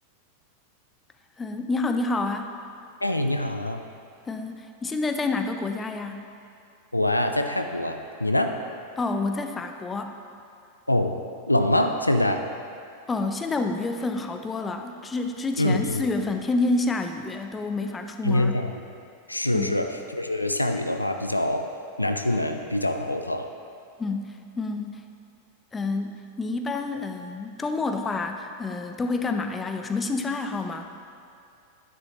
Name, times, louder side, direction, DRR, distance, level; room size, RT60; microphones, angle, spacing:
voice 1, 1.4-2.5 4.3-6.3 9.0-10.1 13.1-18.6 19.5-19.8 24.0-25.0 25.7-30.9, left 3 dB, 15° left, 6 dB, 0.6 m, -28 dB
voice 2, 3.0-3.8 6.9-8.6 10.9-11.2 11.5-12.4 15.6-16.1 18.2-18.7 19.3-21.7 22.0-23.5, left 1 dB, 85° left, 6 dB, 0.5 m, -24 dB
11.0 x 9.8 x 3.0 m, 2.6 s
figure-of-eight pair, 90°, 0 cm